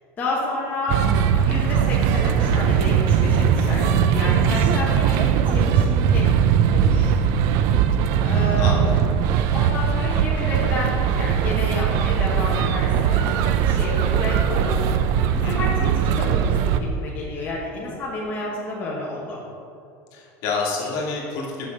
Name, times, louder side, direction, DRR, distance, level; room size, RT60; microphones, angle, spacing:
voice 1, 0.2-1.1 1.4-6.3 6.7-7.1 8.2-8.8 9.5-14.8 15.3-19.4, left 2 dB, 25° left, -6 dB, 1.2 m, -30 dB
sound 1, 0.9-16.8, right 8 dB, 55° right, 0.4 m, -20 dB
voice 2, 4.5-4.9 8.6-8.9 15.4-15.7 20.1-21.7, left 4 dB, 55° left, -2 dB, 1.8 m, -29 dB
6.7 x 6.3 x 5.0 m, 2.6 s
cardioid pair, 155°, 7 cm